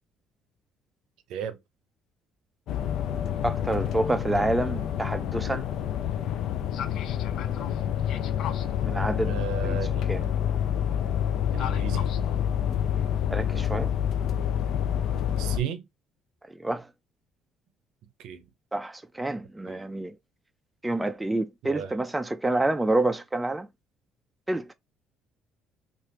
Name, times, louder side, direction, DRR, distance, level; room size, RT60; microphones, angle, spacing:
sound 1, 2.7-15.6, left 9 dB, 70° left, 0.4 m, -28 dB
voice 1, 3.4-5.7 8.8-9.4 9.6-9.8 10.1-10.3 13.3-13.9 16.6-16.9 18.7-20.2 20.8-23.7 24.5-24.7, right 2 dB, 10° right, 0.4 m, -28 dB
voice 2, 9.2-10.1 11.5-12.1 15.4-15.8 18.2-18.5 19.7-19.8 21.6-21.9, right 8 dB, 80° right, 0.6 m, -34 dB
3.1 x 2.4 x 2.8 m
supercardioid pair, 85°, 0 cm